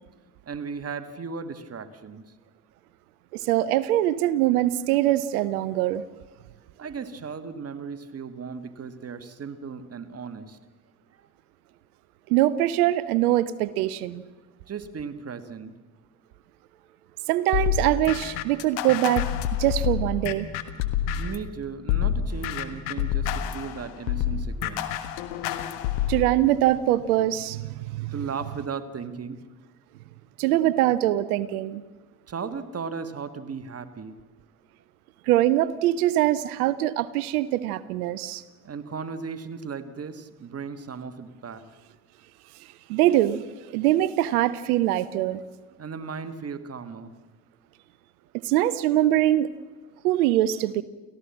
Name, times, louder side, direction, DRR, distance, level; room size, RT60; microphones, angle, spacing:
voice 1, 0.4-2.3 6.8-10.6 11.2-11.3 14.7-15.7 21.1-24.9 28.1-29.4 32.3-34.2 38.6-41.6 45.8-47.1, right 5 dB, 30° right, 10 dB, 1.7 m, -36 dB
voice 2, 3.3-6.0 12.3-14.2 17.3-19.3 19.6-20.5 26.1-28.1 30.4-31.8 35.3-38.4 42.9-45.4 48.4-49.5 50.0-50.8, right 14 dB, 65° right, 17 dB, 0.8 m, -23 dB
sound 1, 17.5-21.5 21.9-26.3, left 10 dB, 60° left, 1.6 m, -27 dB
30.0 x 14.5 x 7.5 m, 1.3 s
figure-of-eight pair, 50°, 48 cm